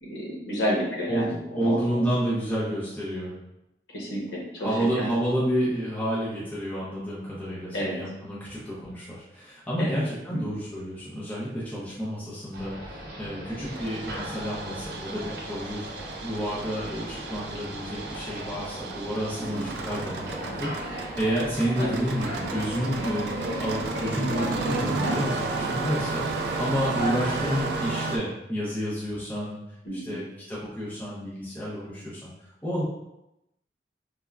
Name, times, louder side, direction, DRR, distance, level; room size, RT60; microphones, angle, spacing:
voice 1, 0.0-2.0 3.9-4.7 5.0-5.1 7.7-8.0 9.8-10.0 10.3-10.4 19.5-19.6 21.8-22.0 29.8-30.2, equal, 85° left, -4 dB, 0.9 m, -30 dB
voice 2, 1.1-3.3 4.6-15.9 16.2-29.6 29.9-32.8, equal, 10° left, -8 dB, 0.6 m, -30 dB
sound 1, 12.5-27.9, equal, 55° right, 0.7 m, -37 dB
Engine starting, 13.7-28.2, right 3 dB, 70° right, 0.3 m, -33 dB
3.4 x 2.1 x 2.3 m, 0.89 s
head